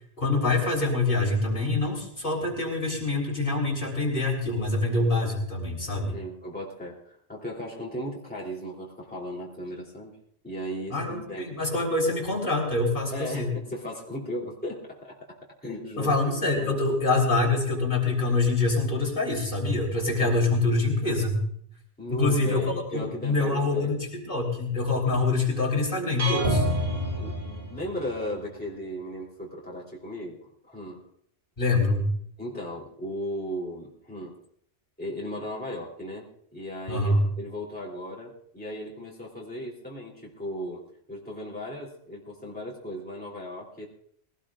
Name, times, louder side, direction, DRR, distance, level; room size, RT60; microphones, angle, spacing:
voice 1, 0.2-6.2 10.9-13.5 16.0-21.4 22.1-26.6 31.6-32.1 36.9-37.3, left 2 dB, 50° left, 0 dB, 3.6 m, -25 dB
voice 2, 6.1-10.2 10.4-11.6 13.1-15.2 15.6-16.1 16.6-16.7 22.0-23.9 27.2-31.1 32.4-34.4 35.0-36.3 36.5-40.8 41.1-43.9, equal, 10° left, -5 dB, 3.2 m, -36 dB
sound 1, 26.2-28.2, equal, 55° right, 7.4 m, -28 dB
20.5 x 18.0 x 2.5 m, 0.66 s
omnidirectional pair, 1.1 m